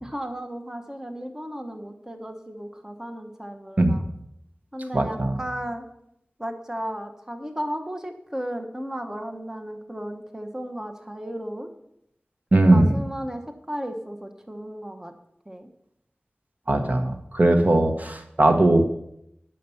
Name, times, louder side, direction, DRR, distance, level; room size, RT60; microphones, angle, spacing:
voice 1, 0.0-4.0 4.7-5.8 6.4-11.7 12.5-15.1 15.5-15.7, equal, 15° right, 4 dB, 1.1 m, -34 dB
voice 2, 4.9-5.4 12.5-13.0 16.7-18.8, right 1 dB, 50° right, 6 dB, 1.1 m, -19 dB
9.5 x 6.6 x 7.0 m, 0.78 s
wide cardioid pair, 55°, 4 cm